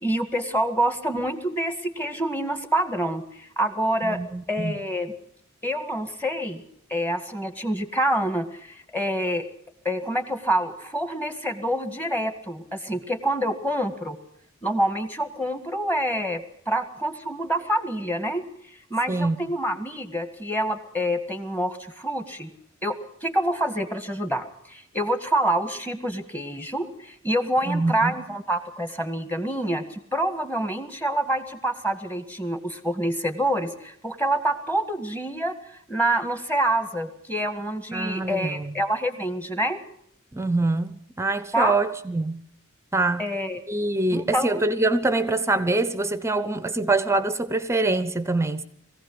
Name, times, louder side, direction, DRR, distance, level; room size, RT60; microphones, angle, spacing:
voice 1, 0.0-4.2 4.5-5.1 5.6-6.6 6.9-9.4 9.9-14.2 14.6-18.4 18.9-22.5 22.8-35.5 35.9-39.8 41.5-41.7 43.2-43.6 44.1-44.6, right 1 dB, 10° left, 1.7 m, -27 dB
voice 2, 4.0-4.8 19.1-19.4 27.6-28.2 37.9-38.7 40.3-42.4 42.9-43.2 43.7-48.6, right 2 dB, 15° right, 0.8 m, -24 dB
21.5 x 16.0 x 7.8 m
head